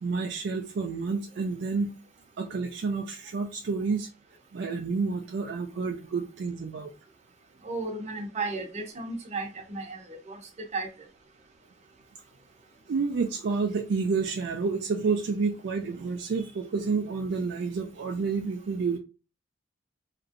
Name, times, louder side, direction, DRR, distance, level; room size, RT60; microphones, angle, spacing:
voice 1, 0.0-1.9 2.4-4.1 4.5-6.9 12.9-19.0, right 4 dB, 60° right, 0.4 m, -29 dB
voice 2, 7.6-10.4 10.7-10.9, right 3 dB, 35° right, 0.7 m, -34 dB
2.9 x 2.6 x 2.5 m
head